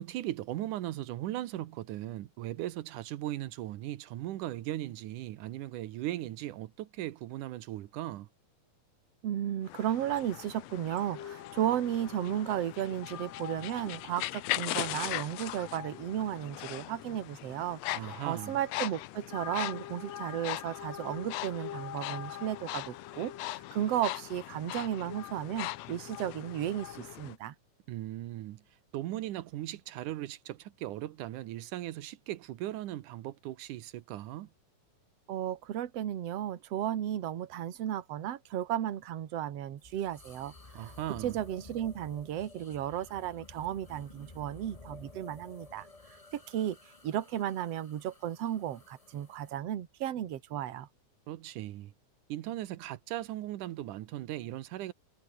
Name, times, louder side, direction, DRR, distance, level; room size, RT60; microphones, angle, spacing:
voice 1, 0.0-8.3 17.9-18.6 27.9-28.6 28.9-34.5 40.8-41.4 51.3-51.9 52.3-54.9, right 14 dB, 90° right, 2.5 m, -38 dB
voice 2, 9.2-27.5 35.3-40.5 40.8-40.9 41.2-45.9 46.3-46.8 47.0-50.9, right 11 dB, 55° right, 2.4 m, -34 dB
sound 1, 9.6-27.3, left 17 dB, 75° left, 1.6 m, -40 dB
sound 2, 11.1-27.1, left 10 dB, 60° left, 1.3 m, -47 dB
sound 3, 39.8-49.6, left 3 dB, 20° left, 1.0 m, -53 dB
omnidirectional pair, 3.6 m